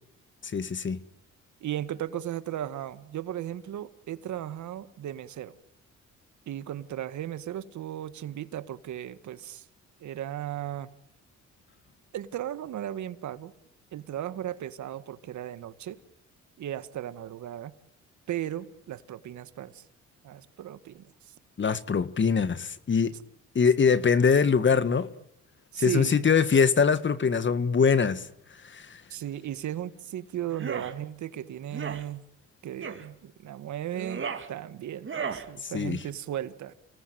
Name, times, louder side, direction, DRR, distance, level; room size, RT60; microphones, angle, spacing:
voice 1, 0.4-1.0 21.6-23.1 23.5-25.1 25.8-28.3 28.6-29.0 35.7-36.0, left 6 dB, 40° left, 1.7 m, -23 dB
voice 2, 1.6-5.5 6.5-9.6 10.0-10.9 12.1-13.5 13.9-16.0 16.6-17.7 18.3-19.8 20.2-21.3 23.1-23.2 25.7-26.2 29.1-32.2 32.6-36.7, right 11 dB, 70° right, 1.8 m, -36 dB
sound 1, 30.5-30.9 31.7-32.0 32.8-33.1 33.9-34.5 35.0-35.5, right 6 dB, 40° right, 3.1 m, -35 dB
29.5 x 19.5 x 9.2 m
cardioid pair, 90°, 30 cm